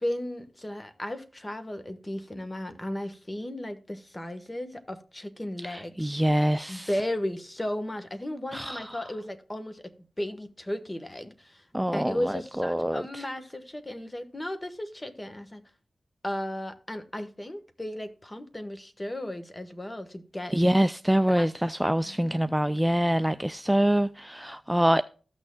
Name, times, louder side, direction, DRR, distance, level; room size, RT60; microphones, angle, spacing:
voice 1, 0.0-6.1 6.7-9.8 10.2-15.6 16.2-20.5 21.3-21.5 22.1-22.4, left 1 dB, 25° left, 1.3 m, -35 dB
voice 2, 5.6-6.9 8.5-9.0 11.7-13.2 20.5-25.0, equal, 5° right, 0.3 m, -25 dB
14.5 x 6.3 x 2.3 m
cardioid pair, 50°, 0 cm